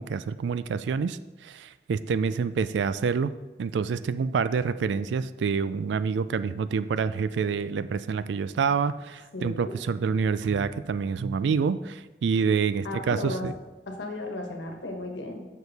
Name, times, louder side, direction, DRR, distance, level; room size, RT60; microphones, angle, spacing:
voice 1, 0.0-3.3 3.6-13.5, right 5 dB, 70° right, 14 dB, 0.3 m, -27 dB
voice 2, 9.3-9.7 12.8-13.5 13.9-15.5, left 2 dB, 85° left, 3 dB, 1.3 m, -34 dB
6.9 x 6.3 x 4.1 m, 1.2 s
head